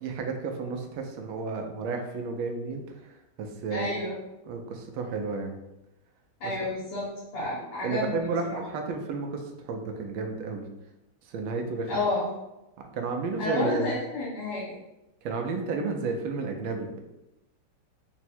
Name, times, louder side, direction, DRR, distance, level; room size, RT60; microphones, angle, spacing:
voice 1, 0.0-3.1 3.4-4.0 4.5-5.5 6.4-6.5 7.5-10.7 11.3-12.0 12.8-13.9 15.2-17.0, right 4 dB, 90° right, 3 dB, 1.4 m, -32 dB
voice 2, 3.7-4.1 6.4-8.6 11.9-12.3 13.4-14.7, left 2 dB, 70° left, -8 dB, 2.1 m, -30 dB
4.5 x 2.1 x 4.3 m, 0.92 s
omnidirectional pair, 2.2 m